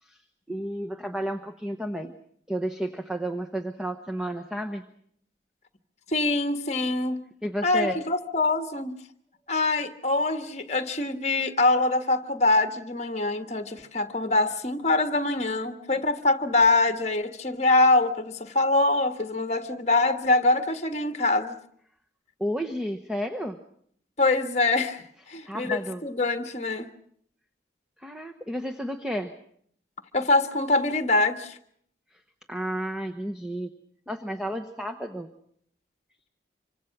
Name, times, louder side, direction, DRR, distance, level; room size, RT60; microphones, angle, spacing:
voice 1, 0.5-2.1 2.5-4.8 7.4-8.0 22.4-23.6 25.4-26.0 28.0-29.3 32.5-33.7 34.1-35.3, equal, 5° right, 0.9 m, -32 dB
voice 2, 6.1-7.2 7.6-9.0 9.5-21.5 24.2-26.9 30.1-31.6, left 2 dB, 35° left, 1.4 m, -24 dB
26.0 x 25.0 x 6.0 m
head